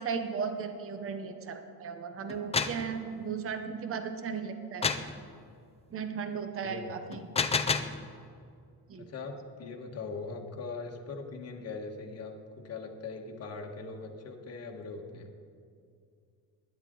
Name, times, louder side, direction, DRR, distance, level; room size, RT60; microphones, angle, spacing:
voice 1, 0.0-4.9 5.9-7.3 8.9-9.1, right 6 dB, 35° right, 7 dB, 0.8 m, -36 dB
sound 1, 2.3-2.8 4.8-5.1 7.1-8.0, left 5 dB, 15° left, 0.4 m, -29 dB
voice 2, 6.6-7.0 8.9-15.3, left 4 dB, 40° left, 1 dB, 1.5 m, -41 dB
21.0 x 10.5 x 3.9 m, 2.3 s
cardioid pair, 165°, 40 cm